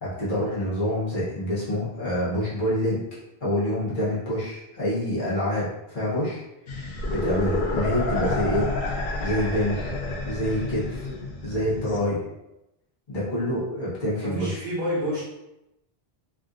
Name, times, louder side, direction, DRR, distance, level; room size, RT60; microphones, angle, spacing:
voice 1, 0.0-3.0 3.4-6.4 7.1-8.7 9.2-9.9 10.2-11.1 11.4-12.2 13.1-14.7, equal, 55° left, -9 dB, 1.2 m, -26 dB
sound 1, 6.7-12.0, left 2 dB, 85° left, 0.9 m, -29 dB
voice 2, 14.2-15.2, equal, 55° right, -9 dB, 1.5 m, -30 dB
3.5 x 2.5 x 2.4 m, 0.90 s
omnidirectional pair, 1.0 m